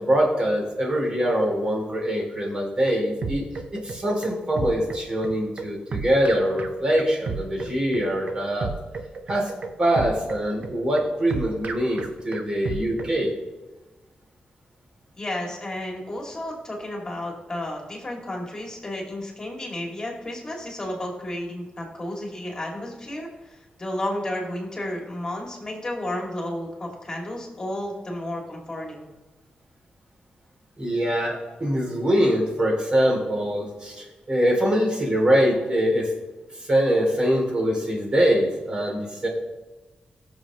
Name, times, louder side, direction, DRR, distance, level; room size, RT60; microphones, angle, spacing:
voice 1, 0.0-3.5 3.8-8.7 9.3-9.5 9.8-13.3 30.8-36.1 36.6-39.3, equal, 30° right, 0 dB, 2.9 m, -23 dB
sound 1, 2.5-13.2, right 4 dB, 50° right, 0.8 m, -33 dB
voice 2, 15.2-29.1, left 1 dB, 20° left, -1 dB, 2.5 m, -32 dB
20.5 x 7.1 x 3.1 m, 1.2 s
wide cardioid pair, 175°, 3 cm